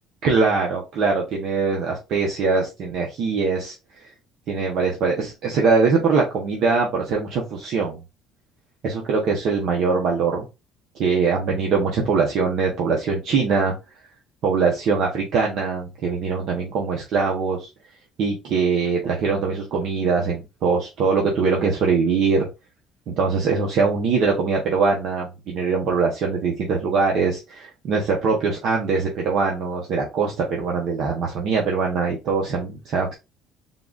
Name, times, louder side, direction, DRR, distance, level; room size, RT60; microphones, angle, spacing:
voice 1, 0.2-4.1 4.5-8.0 8.8-10.5 11.0-13.7 14.4-17.7 18.2-22.5 23.1-33.1, right 4 dB, 55° right, 0 dB, 0.8 m, -22 dB
3.8 x 2.4 x 3.7 m, 0.26 s
cardioid pair, 140°, 0 cm